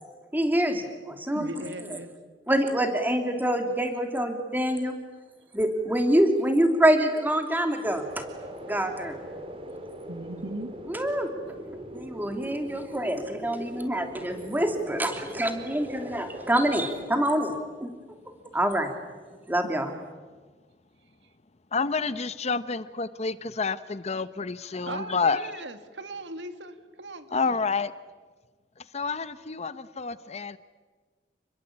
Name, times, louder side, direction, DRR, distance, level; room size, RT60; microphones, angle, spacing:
voice 1, 0.3-1.5 2.5-4.9 5.5-8.2 8.6-9.2 10.9-11.3 11.9-17.9 18.5-18.9 19.5-19.9, right 1 dB, 10° right, 5 dB, 2.9 m, -26 dB
voice 2, 1.3-2.1 10.1-10.7 24.8-27.6, right 2 dB, 80° right, 9 dB, 2.2 m, -38 dB
sound 1, 7.8-17.1, equal, 30° right, 3.5 m, -41 dB
voice 3, 21.7-25.5 27.3-27.9 28.8-30.6, left 4 dB, 40° left, 14 dB, 0.8 m, -29 dB
29.0 x 21.5 x 8.7 m, 1.4 s
head